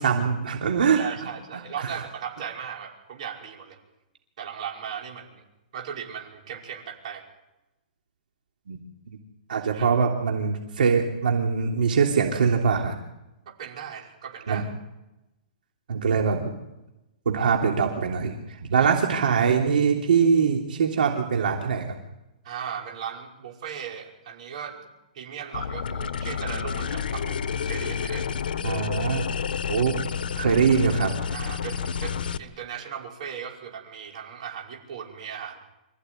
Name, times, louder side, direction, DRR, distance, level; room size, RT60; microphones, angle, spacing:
voice 1, 0.0-1.9 8.7-8.8 9.1-9.2 9.5-13.0 14.5-14.6 15.9-16.5 17.2-22.0 28.6-29.3 29.7-30.0 30.4-31.1, right 6 dB, 75° right, 1 dB, 3.2 m, -23 dB
voice 2, 1.0-3.8 4.4-5.4 5.7-7.2 9.7-9.9 13.6-14.7 18.7-18.9 22.4-24.8 25.1-28.3 31.3-35.6, right 8 dB, 45° right, -1 dB, 5.4 m, -37 dB
sound 1, 25.5-32.4, left 7 dB, 85° left, 1.2 m, -30 dB
26.0 x 15.0 x 9.4 m, 0.94 s
hypercardioid pair, 175°, 5 cm